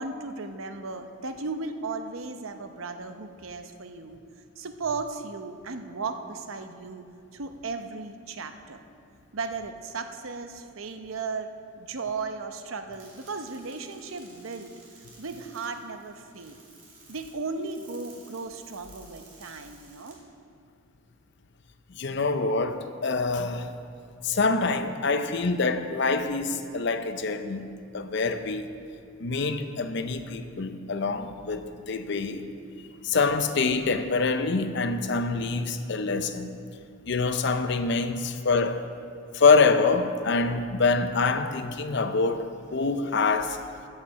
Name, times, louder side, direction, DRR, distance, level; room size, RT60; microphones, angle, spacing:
voice 1, 0.0-4.2 4.6-7.1 7.3-8.8 9.3-14.7 15.2-16.6 17.1-20.2, right 4 dB, 90° right, 0.8 m, -36 dB
sound 1, 12.9-20.1, right 3 dB, 40° right, 2.8 m, -54 dB
voice 2, 21.9-23.7 24.2-27.6 27.9-28.7 29.2-32.5 33.0-36.5 37.1-38.8 39.3-43.6, left 4 dB, 60° left, 0.6 m, -25 dB
14.5 x 6.6 x 5.7 m
head